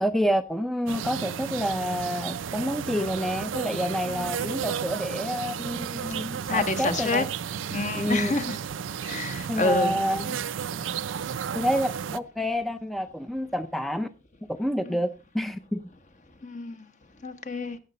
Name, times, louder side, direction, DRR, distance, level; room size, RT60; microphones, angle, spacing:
voice 1, 0.0-7.3 7.9-8.3 9.5-10.3 11.5-14.1 14.6-15.1 15.3-15.8, equal, ahead, 0.5 m, -28 dB
sound 1, 0.9-12.2, right 7 dB, 80° right, 0.5 m, -33 dB
voice 2, 6.5-7.2 7.7-8.6 9.0-9.9 16.4-16.8 17.2-17.8, left 3 dB, 40° left, 1.1 m, -28 dB
16.5 x 6.6 x 4.0 m
head